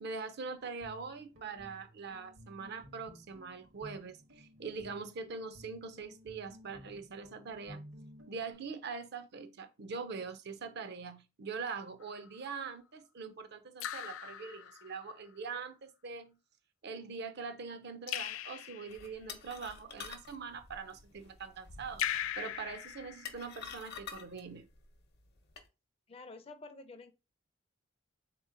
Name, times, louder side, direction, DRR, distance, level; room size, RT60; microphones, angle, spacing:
voice 1, 0.0-7.9 8.3-16.4 16.8-22.0 22.4-24.7, right 5 dB, 55° right, 0.5 m, -43 dB
Guitar, 0.5-8.5, equal, 75° right, 1.1 m, -55 dB
Raindrop / Drip, 12.0-12.5 13.8-15.1 18.1-19.2 22.0-23.7, left 11 dB, 90° left, 0.3 m, -39 dB
sound 1, 18.9-25.7, left 6 dB, 55° left, 0.8 m, -49 dB
voice 2, 26.1-27.1, left 3 dB, 30° left, 0.5 m, -49 dB
3.6 x 2.9 x 3.7 m
head